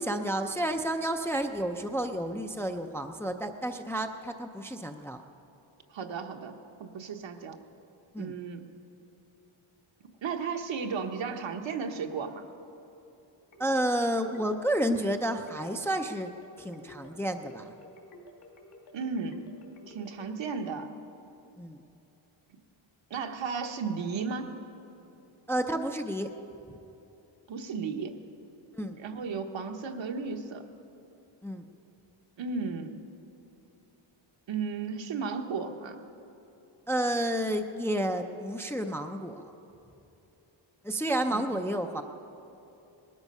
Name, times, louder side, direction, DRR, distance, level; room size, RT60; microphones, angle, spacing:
voice 1, 0.0-5.2 8.1-8.3 13.6-16.3 16.6-17.7 21.6-21.8 25.5-26.3 28.7-29.0 31.4-31.6 36.9-39.5 40.8-42.0, right 1 dB, 5° left, 5 dB, 0.4 m, -30 dB
voice 2, 5.9-7.6 8.2-8.8 10.2-12.4 18.9-19.6 19.9-20.9 23.1-24.5 27.5-28.2 29.0-30.6 32.4-33.0 34.5-36.0 41.3-41.4, right 5 dB, 65° right, 5 dB, 1.2 m, -34 dB
sound 1, 13.5-20.3, left 1 dB, 75° left, 2.6 m, -52 dB
19.5 x 13.0 x 5.4 m, 2.9 s
wide cardioid pair, 150°, 47 cm